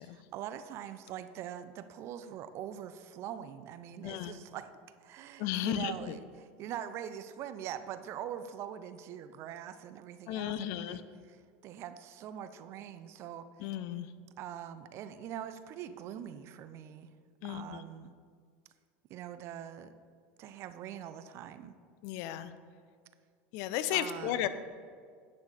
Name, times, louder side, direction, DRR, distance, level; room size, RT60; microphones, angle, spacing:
voice 1, 0.0-4.7 5.0-13.5 14.4-17.1 17.4-18.1 19.1-20.0 20.4-21.7 23.9-24.5, right 10 dB, 50° right, 11 dB, 0.6 m, -43 dB
voice 2, 5.4-6.2 10.3-11.0 13.6-14.1 17.4-17.8 22.0-22.5 23.5-24.5, left 12 dB, 60° left, 13 dB, 0.5 m, -34 dB
9.8 x 5.8 x 4.9 m, 2.1 s
hypercardioid pair, 95°, 6 cm